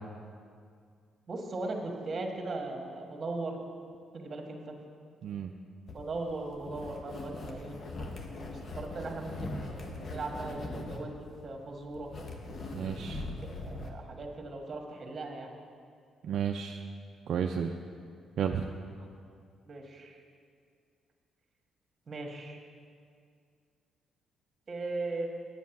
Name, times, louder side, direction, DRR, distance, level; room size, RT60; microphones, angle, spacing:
voice 1, 1.3-3.6 4.1-4.7 5.9-7.8 8.7-12.1 13.1-15.5 19.7-20.2 22.1-22.6 24.7-25.3, right 2 dB, 40° right, 2 dB, 1.6 m, -38 dB
voice 2, 5.2-5.5 12.7-13.2 16.2-16.8 17.3-17.7 18.4-18.7, right 7 dB, 70° right, 4 dB, 0.4 m, -32 dB
sound 1, 5.9-13.9, left 2 dB, 50° left, 1.2 m, -41 dB
9.6 x 7.2 x 5.9 m, 2.2 s
cardioid pair, 90°, 0 cm